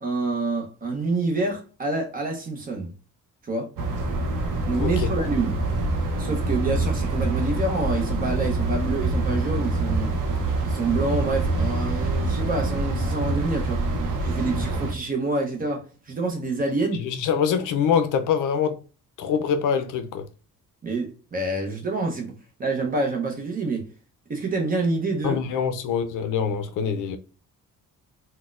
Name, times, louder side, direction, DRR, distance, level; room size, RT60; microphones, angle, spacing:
voice 1, 0.0-2.9 3.4-3.7 4.7-5.6 6.2-10.1 10.6-13.8 14.2-17.0 20.8-22.3 22.6-23.8 24.3-25.4, right 3 dB, 25° right, 0.6 m, -27 dB
sound 1, 3.8-14.9, right 2 dB, 85° right, 0.7 m, -25 dB
voice 2, 4.8-5.1 16.9-18.8 19.2-20.3 25.2-27.2, left 7 dB, 75° left, 0.5 m, -24 dB
4.1 x 2.1 x 2.3 m
cardioid pair, 160°, 32 cm